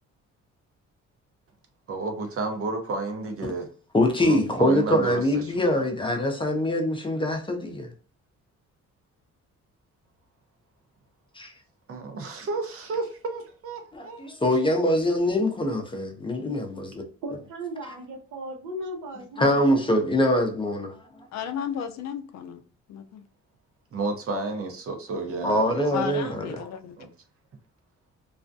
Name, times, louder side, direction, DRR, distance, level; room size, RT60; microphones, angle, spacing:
voice 1, 1.9-3.7 4.2-5.9 11.9-14.3 23.9-26.6 27.0-27.1, right 3 dB, 50° right, 0.7 m, -32 dB
voice 2, 3.9-7.9 11.4-11.5 13.9-17.0 19.4-21.1 25.4-26.4, left 1 dB, 15° left, 0.6 m, -24 dB
voice 3, 17.2-20.0, right 1 dB, 80° right, 0.8 m, -37 dB
voice 4, 21.3-22.6 22.9-23.2 25.9-27.0, left 8 dB, 60° left, 0.4 m, -33 dB
2.4 x 2.2 x 2.5 m
cardioid pair, 90°, 30 cm